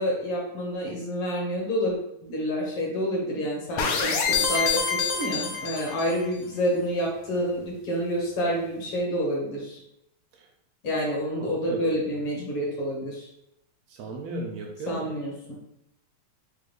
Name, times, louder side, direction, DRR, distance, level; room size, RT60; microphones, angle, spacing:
voice 1, 0.0-1.9 2.2-9.8 10.8-13.3 14.9-15.5, equal, 65° left, -2 dB, 1.5 m, -28 dB
sound 1, 3.8-6.2, left 5 dB, 85° left, 1.3 m, -26 dB
voice 2, 11.4-11.8 12.1-12.2 13.9-15.1, right 2 dB, 75° right, 2 dB, 1.6 m, -36 dB
5.1 x 2.2 x 3.1 m, 0.79 s
omnidirectional pair, 3.3 m